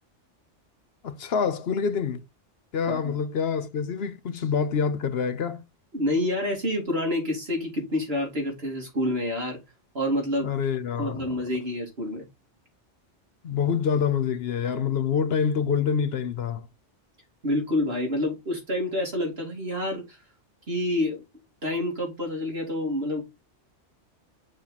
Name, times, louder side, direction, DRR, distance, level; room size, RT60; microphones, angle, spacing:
voice 1, 1.0-2.2 2.7-5.6 10.4-11.3 13.4-16.7, left 6 dB, 60° left, 0.9 m, -26 dB
voice 2, 5.9-9.6 9.9-10.5 11.0-12.3 17.4-20.0 20.7-21.2 21.6-23.2, left 1 dB, 55° right, 3.1 m, -28 dB
6.6 x 4.4 x 4.1 m
omnidirectional pair, 1.2 m